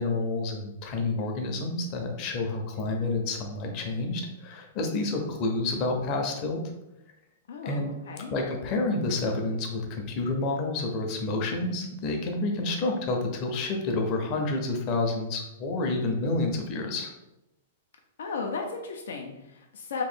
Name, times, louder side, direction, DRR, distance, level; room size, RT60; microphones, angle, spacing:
voice 1, 0.0-6.6 7.6-7.9 8.3-17.1, left 2 dB, 30° left, 2 dB, 0.6 m, -29 dB
voice 2, 7.5-8.3 18.2-20.0, left 4 dB, 85° left, 2 dB, 0.6 m, -35 dB
3.0 x 2.5 x 4.4 m, 0.90 s
supercardioid pair, 165°, 0 cm